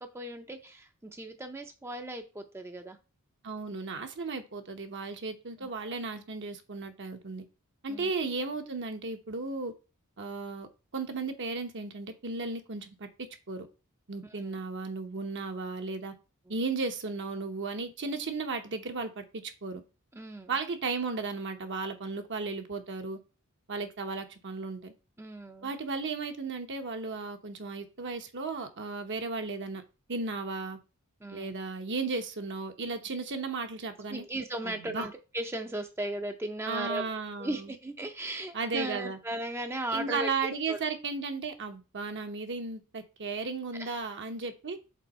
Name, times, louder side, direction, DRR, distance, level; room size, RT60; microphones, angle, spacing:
voice 1, 0.0-3.0 5.6-5.7 7.9-8.1 14.2-14.6 20.1-20.5 25.2-25.7 31.2-31.5 34.1-37.1 37.4-40.3 40.7-40.8 43.8-44.0, right 1 dB, 10° right, 5 dB, 0.6 m, -37 dB
voice 2, 3.4-7.4 7.8-9.7 10.2-13.7 14.1-16.1 16.5-19.8 20.5-23.2 23.7-24.9 25.6-29.8 30.1-30.8 31.3-34.2 34.6-35.1 36.7-37.7 38.5-39.2 39.9-44.8, right 4 dB, 55° right, 6 dB, 1.0 m, -35 dB
5.3 x 3.9 x 5.4 m, 0.31 s
head